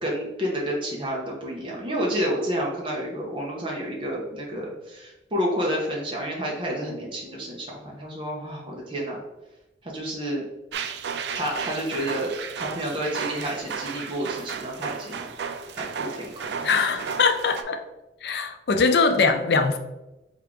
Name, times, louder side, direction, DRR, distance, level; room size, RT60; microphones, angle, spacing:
voice 1, 0.0-9.2 9.8-10.4 11.3-12.3 12.6-15.3 15.7-17.0, equal, 30° right, -3 dB, 0.9 m, -30 dB
sound 1, 10.7-17.6, right 6 dB, 70° right, 0.4 m, -34 dB
voice 2, 16.6-17.8 18.2-19.8, left 4 dB, 65° left, 7 dB, 0.5 m, -22 dB
3.6 x 3.6 x 3.6 m, 0.98 s
head